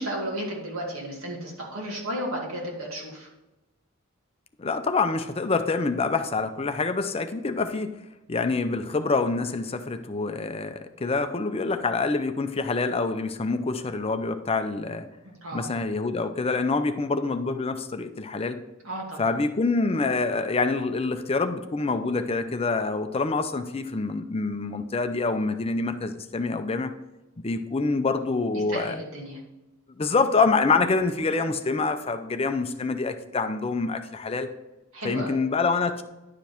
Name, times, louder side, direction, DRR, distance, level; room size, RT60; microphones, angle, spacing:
voice 1, 0.0-3.3 15.3-15.7 18.8-19.3 28.7-29.4 34.9-35.4, right 1 dB, 75° right, -2 dB, 2.4 m, -33 dB
voice 2, 4.6-7.9 8.3-15.1 15.5-18.6 19.2-26.9 27.4-29.0 30.0-34.5 35.0-36.0, left 3 dB, 30° left, 8 dB, 0.5 m, -26 dB
10.5 x 5.1 x 4.4 m, 1.0 s
head